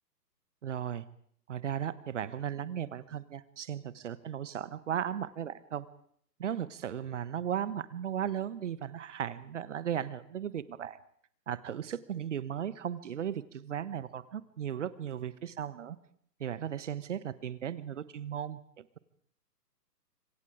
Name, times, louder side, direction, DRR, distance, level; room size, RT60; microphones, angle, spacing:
voice 1, 0.6-1.0 1.5-5.9 6.4-11.0 11.5-16.0 16.4-19.0, right 9 dB, 45° right, 17 dB, 1.4 m, -36 dB
26.5 x 24.5 x 5.0 m, 0.63 s
figure-of-eight pair, 135°, 49 cm